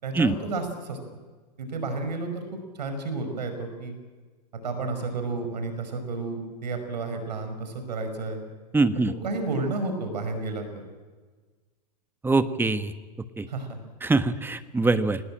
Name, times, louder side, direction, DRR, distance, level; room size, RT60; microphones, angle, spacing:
voice 1, 0.0-1.0 1.6-3.9 4.6-8.4 9.2-10.8 13.5-13.8, right 3 dB, 85° right, 7 dB, 5.3 m, -31 dB
voice 2, 8.7-9.1 12.2-12.9 13.4-13.5 14.0-15.2, right 3 dB, 10° right, 11 dB, 1.3 m, -23 dB
24.5 x 20.0 x 8.9 m, 1.4 s
hypercardioid pair, 105°, 21 cm